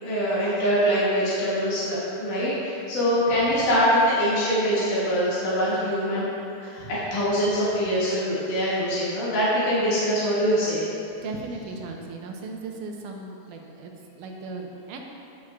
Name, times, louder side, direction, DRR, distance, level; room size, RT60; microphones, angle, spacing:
voice 1, 0.0-6.2 6.6-10.8, equal, 85° left, -11 dB, 3.5 m, -23 dB
voice 2, 11.2-15.0, right 3 dB, 85° right, 1 dB, 2.4 m, -37 dB
17.5 x 6.5 x 2.4 m, 2.7 s
omnidirectional pair, 3.5 m